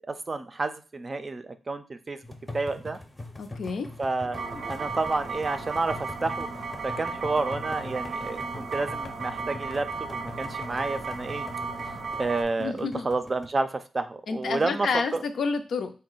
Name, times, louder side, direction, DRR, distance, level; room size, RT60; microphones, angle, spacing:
voice 1, 0.1-2.2 2.5-3.0 4.0-4.4 4.7-6.5 6.8-11.4 12.2-15.2, right 3 dB, 35° right, 9 dB, 0.4 m, -30 dB
sound 1, 2.2-13.5, left 2 dB, 20° left, 0.6 m, -43 dB
voice 2, 3.4-3.9 12.6-13.1 14.3-15.9, left 4 dB, 75° left, 7 dB, 0.5 m, -29 dB
sound 2, 4.3-12.4, right 4 dB, 80° right, 0.6 m, -35 dB
4.0 x 2.1 x 3.8 m, 0.35 s
cardioid pair, 75°, 0 cm